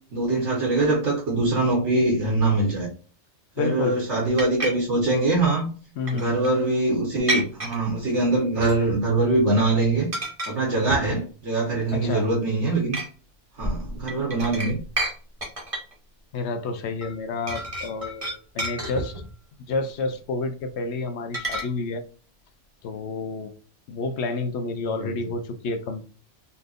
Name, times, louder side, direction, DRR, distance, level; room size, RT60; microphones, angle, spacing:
voice 1, 0.1-2.9 3.6-5.7 6.1-10.1 10.5-13.0 13.6-14.8 25.0-25.1, right 2 dB, 80° right, 1.5 m, -23 dB
voice 2, 3.6-4.1 6.0-6.3 11.9-12.3 16.3-19.2 19.7-22.0 22.8-23.5 23.9-26.0, left 3 dB, 70° left, 0.9 m, -29 dB
sound 1, 4.4-4.7 6.1-6.5 7.3-7.8 8.6-9.1 9.3-9.6 10.1-10.5 10.9-11.2 11.7-12.2 12.9-13.1 13.6-15.1 15.4-15.9 17.0-17.1 17.5-19.3 21.3-21.6, right 1 dB, 30° right, 1.2 m, -30 dB
4.1 x 3.3 x 2.4 m
omnidirectional pair, 1.2 m